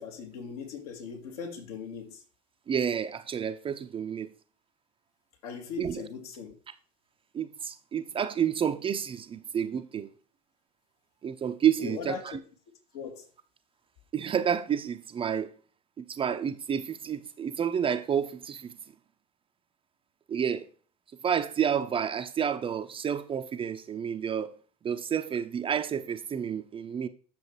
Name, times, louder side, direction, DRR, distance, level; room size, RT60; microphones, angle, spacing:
voice 1, 0.0-2.2 5.4-6.5 11.8-12.4 12.9-13.3, left 6 dB, 60° left, 2.5 m, -39 dB
voice 2, 2.7-4.3 5.8-6.0 7.3-10.1 11.2-12.4 14.1-15.5 16.0-18.7 20.3-20.6 21.2-24.5 24.8-27.1, right 8 dB, 25° right, 0.8 m, -30 dB
8.7 x 6.9 x 4.8 m
figure-of-eight pair, 75°, 21 cm